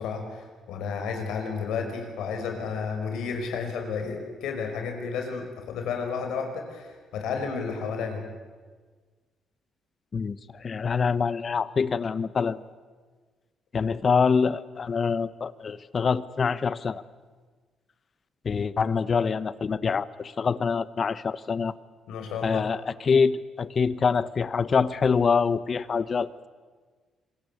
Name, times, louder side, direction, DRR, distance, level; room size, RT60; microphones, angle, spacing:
voice 1, 0.0-8.2 22.1-22.7, left 5 dB, 85° left, 4 dB, 5.4 m, -32 dB
voice 2, 10.1-12.6 13.7-17.0 18.4-21.7 22.4-26.5, left 5 dB, 45° left, 16 dB, 1.0 m, -25 dB
26.5 x 22.0 x 8.6 m, 1.5 s
cardioid pair, 90°, 0 cm